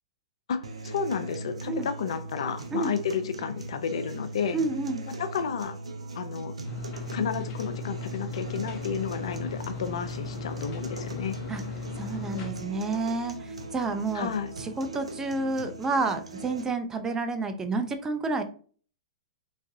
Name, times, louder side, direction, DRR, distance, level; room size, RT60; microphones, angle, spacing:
voice 1, 0.5-4.6 5.1-5.8 6.1-6.5 7.1-11.3 14.1-14.5, left 6 dB, 70° left, 10 dB, 0.5 m, -31 dB
sound 1, 0.6-16.6, right 2 dB, 85° right, 0.5 m, -40 dB
voice 2, 4.5-5.0 11.5-11.6 11.9-14.3 14.6-18.4, right 3 dB, 15° right, 7 dB, 0.5 m, -29 dB
sound 2, 6.6-12.5, left 3 dB, 40° left, 0.9 m, -37 dB
3.4 x 3.2 x 2.6 m, 0.42 s
hypercardioid pair, 110°, 3 cm